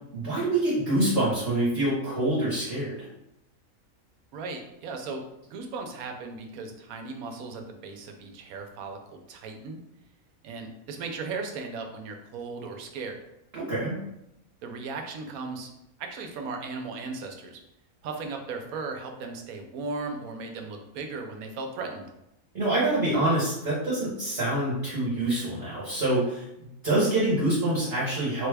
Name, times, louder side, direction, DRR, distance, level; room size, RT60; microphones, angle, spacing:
voice 1, 0.1-3.1 13.5-14.0 22.5-26.4 26.8-28.5, right 1 dB, 45° right, -8 dB, 1.1 m, -26 dB
voice 2, 4.3-5.2 5.5-9.8 10.4-13.2 14.6-15.7 16.0-17.6 18.0-22.1, right 4 dB, 85° right, 4 dB, 1.0 m, -36 dB
3.5 x 2.2 x 3.3 m, 0.86 s
omnidirectional pair, 1.5 m